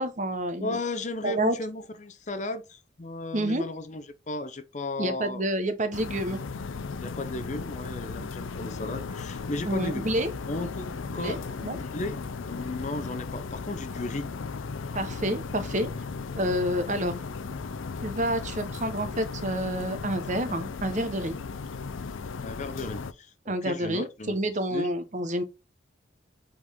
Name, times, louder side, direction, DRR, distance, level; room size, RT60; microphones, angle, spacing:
voice 1, 0.0-0.8 1.2-1.6 3.3-3.6 5.0-6.4 9.6-10.3 11.1-11.4 11.6-11.8 14.9-15.9 16.4-17.1 18.0-21.4 23.5-25.4, right 1 dB, 40° right, 0.9 m, -28 dB
voice 2, 0.6-5.4 7.0-10.1 10.5-12.2 12.5-14.3 22.4-24.4 24.7-24.9, left 2 dB, 35° left, 0.7 m, -35 dB
sound 1, 5.9-23.1, left 4 dB, 85° left, 0.5 m, -36 dB
7.8 x 3.9 x 3.5 m
head